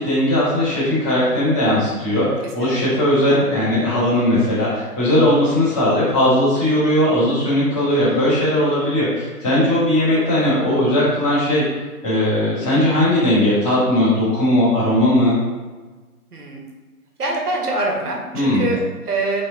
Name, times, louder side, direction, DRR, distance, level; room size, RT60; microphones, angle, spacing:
voice 1, 0.0-11.6 12.0-15.4 18.3-18.7, left 1 dB, 5° left, -14 dB, 1.1 m, -18 dB
voice 2, 2.4-3.0 8.1-8.3 10.1-10.4 16.3-16.6 17.2-19.4, right 2 dB, 75° right, 0 dB, 1.3 m, -25 dB
4.1 x 3.3 x 3.5 m, 1.3 s
hypercardioid pair, 165°, 46 cm